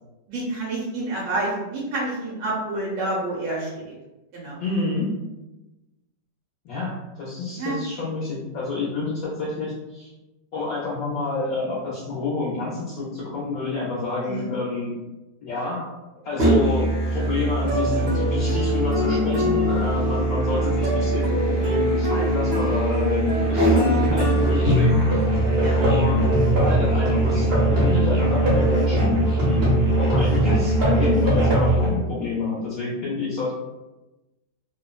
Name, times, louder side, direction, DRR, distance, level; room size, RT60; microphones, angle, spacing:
voice 1, 0.3-3.9 4.3-4.6 7.6-7.8 14.2-14.5 25.6-25.8, right 2 dB, 80° right, -4 dB, 1.3 m, -28 dB
voice 2, 4.6-5.1 6.6-10.1 10.5-14.9 15.4-15.9 16.2-25.0 25.7-29.2 29.5-29.6 30.0-33.5, left 3 dB, 70° left, -6 dB, 1.0 m, -28 dB
Musical instrument, 16.4-31.9, right 1 dB, 55° right, 0.7 m, -20 dB
3.0 x 2.0 x 2.3 m, 1.0 s
omnidirectional pair, 1.8 m